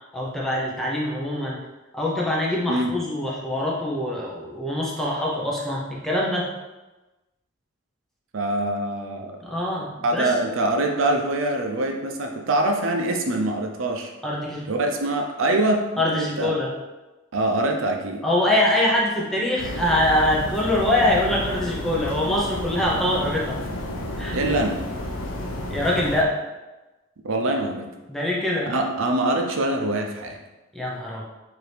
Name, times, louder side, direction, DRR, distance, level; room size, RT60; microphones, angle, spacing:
voice 1, 0.1-1.6 1.9-6.5 9.4-10.3 14.2-14.6 16.0-16.7 18.2-23.6 24.2-24.4 25.7-26.3 28.1-28.7 30.7-31.2, left 1 dB, ahead, -4 dB, 0.7 m, -24 dB
voice 2, 8.3-9.4 10.0-14.1 14.7-16.5 17.3-18.2 24.3-24.8 27.2-27.9 28.7-30.4, right 2 dB, 80° right, 3 dB, 0.6 m, -24 dB
sound 1, 19.6-26.2, left 1 dB, 80° left, 0.6 m, -31 dB
4.8 x 2.7 x 3.3 m, 1.1 s
head